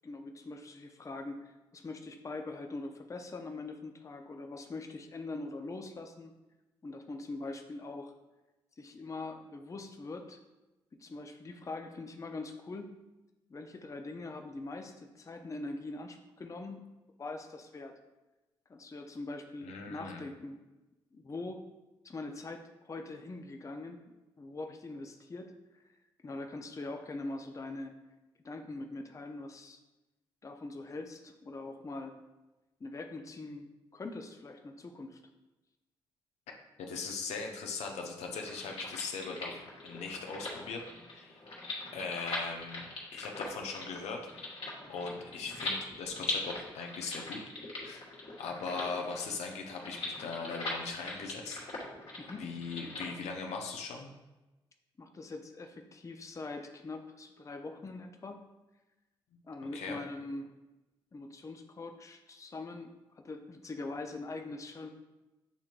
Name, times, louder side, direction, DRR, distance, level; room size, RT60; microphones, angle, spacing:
voice 1, 0.0-6.3 6.8-8.1 8.8-10.4 11.0-13.0 13.5-16.8 17.2-18.0 18.7-20.6 21.1-21.6 22.0-24.0 24.4-25.8 26.2-27.9 28.4-29.8 30.4-32.2 32.8-35.2 52.2-52.5 55.0-58.5 59.5-60.5 61.1-64.9, left 2 dB, 30° left, 5 dB, 0.5 m, -43 dB
voice 2, 19.6-20.2 36.8-40.8 41.1-41.4 41.9-42.8 43.1-44.3 44.9-47.4 47.8-48.1 48.4-51.6 52.4-54.1 59.7-60.0, left 4 dB, 75° left, 2 dB, 0.6 m, -39 dB
sound 1, 38.3-53.1, left 2 dB, 60° left, 1.4 m, -41 dB
6.8 x 2.9 x 2.4 m, 1.1 s
hypercardioid pair, 45°, 12 cm